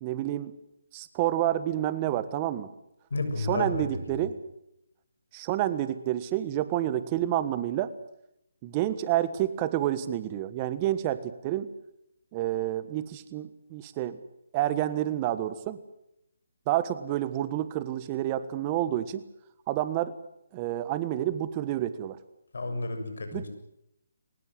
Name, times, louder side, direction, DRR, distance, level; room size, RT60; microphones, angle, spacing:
voice 1, 0.0-0.5 0.9-2.7 3.4-4.3 5.3-7.9 8.6-11.7 12.3-14.2 14.5-15.8 16.7-19.2 19.7-20.1 20.5-22.2 23.3-23.5, right 13 dB, 25° right, 13 dB, 1.4 m, -29 dB
voice 2, 3.1-3.9 22.5-23.5, left 2 dB, 75° left, 7 dB, 6.9 m, -31 dB
23.5 x 20.0 x 8.0 m, 0.79 s
hypercardioid pair, 155°, 0 cm